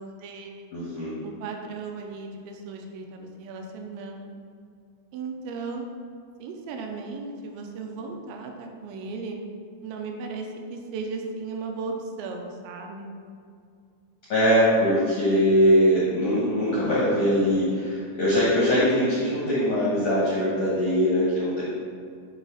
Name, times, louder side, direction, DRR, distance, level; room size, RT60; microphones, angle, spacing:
voice 1, 0.0-0.7 1.2-4.3 5.1-5.9 6.4-9.4 9.8-13.1, right 4 dB, 90° right, 2 dB, 3.0 m, -36 dB
voice 2, 0.7-1.1 14.3-21.6, equal, 70° left, -9 dB, 1.6 m, -22 dB
9.1 x 3.2 x 5.0 m, 2.3 s
omnidirectional pair, 5.1 m